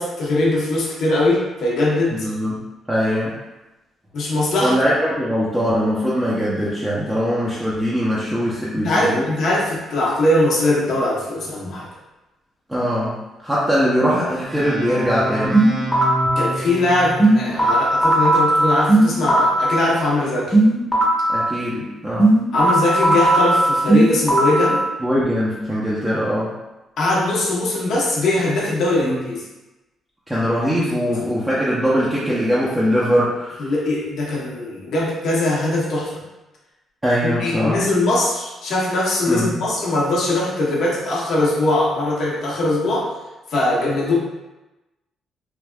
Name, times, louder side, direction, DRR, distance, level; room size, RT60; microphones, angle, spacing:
voice 1, 0.0-2.3 4.1-4.8 8.8-11.9 16.4-20.6 22.5-24.8 27.0-29.4 30.8-31.1 33.6-36.1 37.2-43.1 43.5-44.1, left 2 dB, 70° left, -4 dB, 0.9 m, -21 dB
voice 2, 2.2-2.6 2.9-3.3 4.6-9.3 12.7-13.1 13.4-15.6 21.3-22.3 25.0-26.5 29.0-29.2 30.3-33.7 37.0-37.8 39.3-39.6, equal, 10° right, -8 dB, 0.6 m, -21 dB
sound 1, 14.4-18.1, right 1 dB, 55° right, 0.8 m, -28 dB
sound 2, 15.5-16.4 17.2-19.7 20.5-21.4 22.2-24.7, right 1 dB, 10° left, 0.9 m, -16 dB
3.3 x 2.4 x 2.2 m, 1.0 s
cardioid pair, 90°, 0 cm